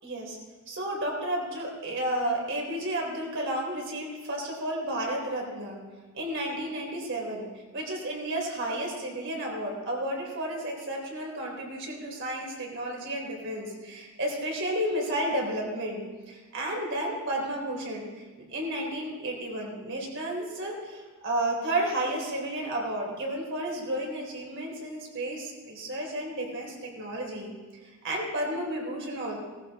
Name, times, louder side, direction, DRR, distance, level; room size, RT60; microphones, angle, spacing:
voice 1, 0.0-0.4 0.7-5.8 6.1-18.2 18.5-27.5 27.8-29.4, right 1 dB, 55° right, -1 dB, 3.8 m, -32 dB
18.0 x 14.5 x 4.2 m, 1.3 s
head